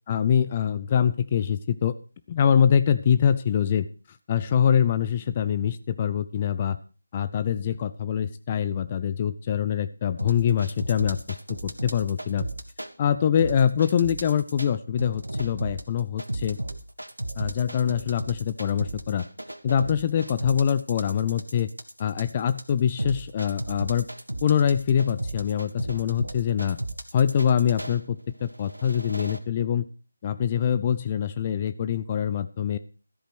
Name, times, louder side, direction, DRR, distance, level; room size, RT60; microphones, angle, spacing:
voice 1, 0.1-2.0 2.3-3.9 4.3-6.8 7.1-12.5 13.0-16.6 17.4-19.2 19.6-21.7 22.0-24.1 24.4-26.8 27.1-29.9 30.2-32.8, left 8 dB, 25° left, 12 dB, 0.6 m, -24 dB
sound 1, 10.2-12.9 13.4-14.7 15.0-28.0 28.5-29.4, right 1 dB, 85° right, 1.6 m, -34 dB
13.5 x 8.3 x 6.1 m, 0.36 s
figure-of-eight pair, 155°, 0 cm